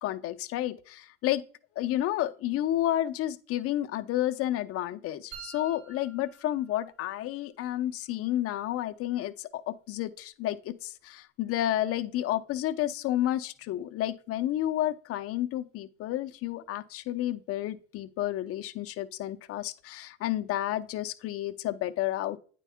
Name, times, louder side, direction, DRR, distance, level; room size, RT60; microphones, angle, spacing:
voice 1, 0.0-1.4 1.8-22.4, left 13 dB, 45° left, 0.7 m, -31 dB
sound 1, 5.3-7.3, right 7 dB, 80° right, 2.2 m, -48 dB
9.0 x 4.6 x 3.5 m
supercardioid pair, 95°, 32 cm